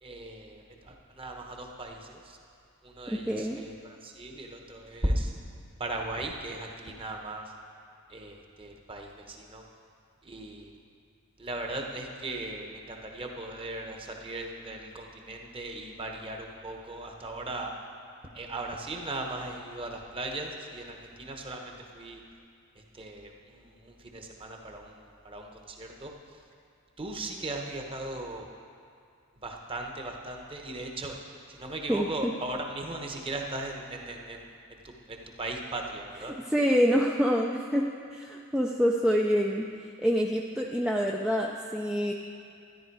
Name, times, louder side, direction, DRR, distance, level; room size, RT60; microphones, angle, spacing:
voice 1, 0.0-2.4 2.8-5.3 5.8-7.4 8.1-9.6 10.2-10.7 11.4-17.7 18.3-22.2 22.9-24.9 25.2-26.1 27.0-28.5 29.4-31.1 31.6-34.4 34.7-34.8 35.1-36.3, right 2 dB, 25° right, 2 dB, 1.0 m, -37 dB
voice 2, 3.1-3.7 31.9-32.3 36.4-39.7 40.0-42.1, equal, 5° right, -1 dB, 0.4 m, -26 dB
13.0 x 10.5 x 4.7 m, 2.4 s
head